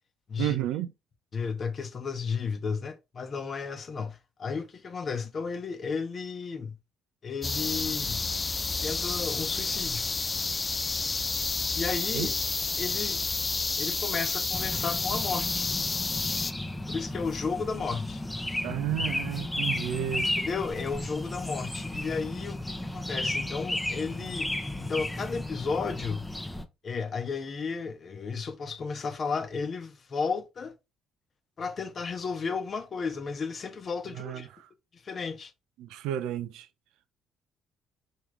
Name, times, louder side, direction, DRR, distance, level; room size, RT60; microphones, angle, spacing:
voice 1, 0.4-0.9 12.1-12.3 18.6-20.3 34.1-34.7 35.8-36.7, right 12 dB, 70° right, 0.5 m, -32 dB
voice 2, 1.3-6.8 7.2-8.2 8.8-10.0 11.7-12.3 12.8-13.2 13.8-15.7 16.9-18.2 20.4-26.3 26.8-30.7 31.6-34.5 34.9-35.5, left 5 dB, 45° left, 0.9 m, -33 dB
sound 1, 7.4-16.5, left 3 dB, 30° left, 0.3 m, -30 dB
sound 2, 14.5-26.6, left 1 dB, 10° left, 0.7 m, -34 dB
4.7 x 3.0 x 3.3 m
hypercardioid pair, 50°, 0 cm